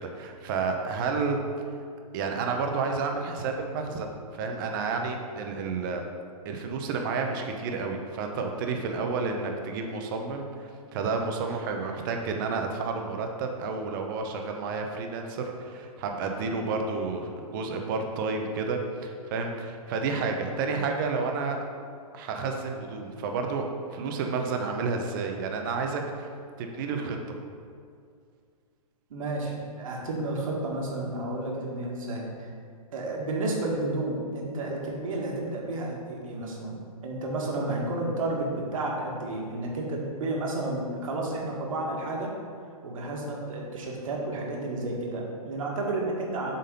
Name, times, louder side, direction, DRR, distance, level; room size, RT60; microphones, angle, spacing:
voice 1, 0.0-1.4 2.1-6.0 6.4-21.6 22.1-23.6 23.9-26.3 26.6-27.2, right 4 dB, 35° right, 3 dB, 0.8 m, -30 dB
voice 2, 29.1-32.5 32.9-42.3 42.8-46.6, right 2 dB, 60° right, -1 dB, 1.7 m, -31 dB
7.7 x 4.0 x 5.3 m, 2.2 s
hypercardioid pair, 145°, 20 cm